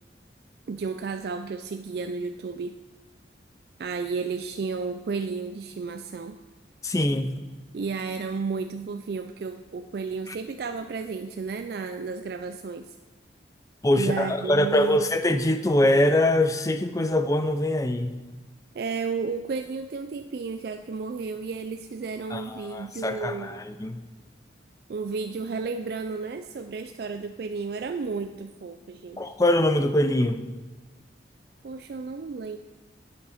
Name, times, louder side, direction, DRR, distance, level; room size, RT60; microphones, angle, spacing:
voice 1, 0.7-2.8 3.8-6.4 7.7-12.9 13.9-15.1 18.7-23.6 24.9-29.3 31.6-32.6, right 4 dB, 55° right, 8 dB, 0.3 m, -33 dB
voice 2, 6.8-7.4 10.3-10.4 13.8-18.2 22.3-24.0 29.2-30.5, left 1 dB, 15° left, 9 dB, 0.4 m, -23 dB
9.4 x 8.3 x 5.0 m, 1.3 s
head